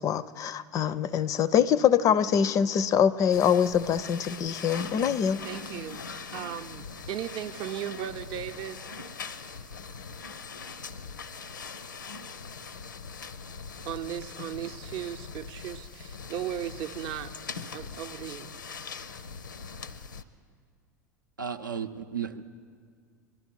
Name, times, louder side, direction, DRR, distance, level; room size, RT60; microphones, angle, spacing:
voice 1, 0.0-5.4, left 8 dB, 35° left, 0.4 m, -24 dB
sound 1, 3.3-20.2, left 5 dB, 80° left, 0.6 m, -41 dB
voice 2, 5.4-8.9 9.4-9.5 10.5-10.6 13.8-17.3 17.7-18.5, right 10 dB, 45° right, 0.6 m, -37 dB
voice 3, 21.4-22.5, right 7 dB, 85° right, 0.6 m, -34 dB
22.0 x 12.0 x 4.6 m
figure-of-eight pair, 85°, 10 cm